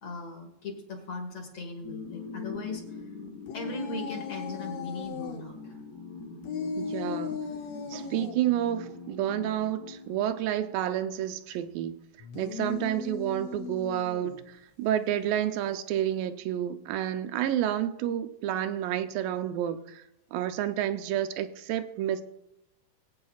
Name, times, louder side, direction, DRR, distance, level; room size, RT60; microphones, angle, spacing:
voice 1, 0.0-3.1 3.5-5.8 12.6-12.8, left 2 dB, 55° left, 2.2 m, -39 dB
sound 1, 1.8-10.8, left 4 dB, 20° left, 0.7 m, -43 dB
sound 2, 3.5-5.4 6.4-8.4 12.2-14.4, left 6 dB, 75° left, 1.6 m, -37 dB
voice 2, 6.8-7.4 7.9-12.0 12.3-20.0 20.3-22.2, right 11 dB, 85° right, 2.4 m, -30 dB
22.0 x 8.6 x 2.3 m
omnidirectional pair, 3.9 m